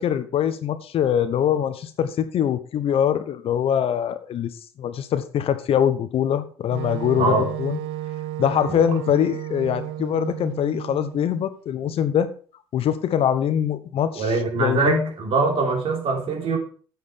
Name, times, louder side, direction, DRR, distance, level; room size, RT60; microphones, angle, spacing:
voice 1, 0.0-4.5 4.8-7.8 8.4-12.3 12.7-15.1, left 9 dB, 55° left, 1.0 m, -23 dB
Wind instrument woodwind instrument, 6.7-11.4, right 14 dB, 75° right, 0.7 m, -32 dB
voice 2, 7.2-7.5 8.7-8.8 14.2-16.6, right 3 dB, 55° right, 3.5 m, -23 dB
8.7 x 7.8 x 5.2 m
hypercardioid pair, 60°, 12 cm